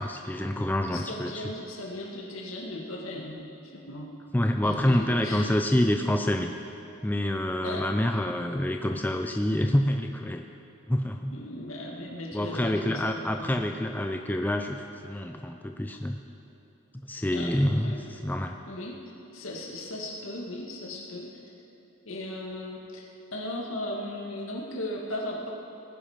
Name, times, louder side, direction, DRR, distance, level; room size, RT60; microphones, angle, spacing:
voice 1, 0.0-1.4 4.3-6.5 7.0-10.4 10.9-11.3 12.3-16.2 16.9-18.6, left 1 dB, 10° left, 4 dB, 0.4 m, -27 dB
voice 2, 0.9-3.4 3.6-4.1 4.6-5.5 7.6-7.9 11.3-13.6 17.3-17.6 17.8-18.0 18.7-19.0 19.3-21.3 22.1-25.5, left 1 dB, 75° left, -1 dB, 2.0 m, -37 dB
18.5 x 10.0 x 5.1 m, 2.9 s
head